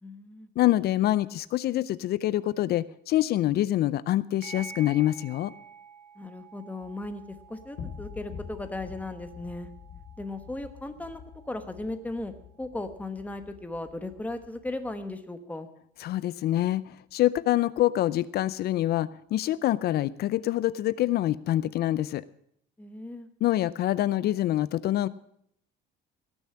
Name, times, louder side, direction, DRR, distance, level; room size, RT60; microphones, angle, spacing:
voice 1, 0.0-0.5 6.2-9.7 10.2-12.3 12.6-15.7 22.8-23.3, left 2 dB, 5° left, 9 dB, 1.1 m, -37 dB
voice 2, 0.6-5.5 16.0-22.2 23.4-25.1, left 14 dB, 50° left, 18 dB, 0.4 m, -26 dB
sound 1, 4.4-13.4, right 5 dB, 50° right, 2.2 m, -50 dB
sound 2, 6.8-15.1, left 7 dB, 75° left, 3.6 m, -47 dB
18.0 x 7.1 x 8.6 m, 0.71 s
cardioid pair, 160°, 20 cm